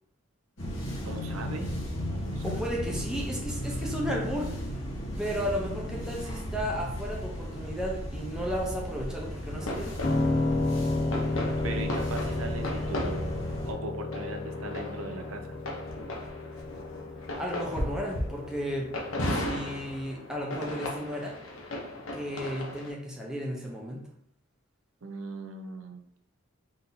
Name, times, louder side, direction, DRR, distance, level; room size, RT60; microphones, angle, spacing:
sound 1, 0.6-13.7, equal, 60° left, 1.2 m, -35 dB
voice 1, 1.0-1.7 2.1-2.7 11.6-13.4 13.6-15.6 25.0-26.0, right 2 dB, 90° right, 4 dB, 0.6 m, -39 dB
voice 2, 2.4-4.6 5.2-9.9 17.4-18.9 19.2-21.4 22.1-24.0, equal, 5° right, -2 dB, 0.6 m, -34 dB
sound 2, 9.5-22.9, left 1 dB, 85° left, 0.9 m, -37 dB
Piano, 10.0-20.1, left 2 dB, 40° left, 0.4 m, -33 dB
3.9 x 2.8 x 3.8 m, 0.70 s
head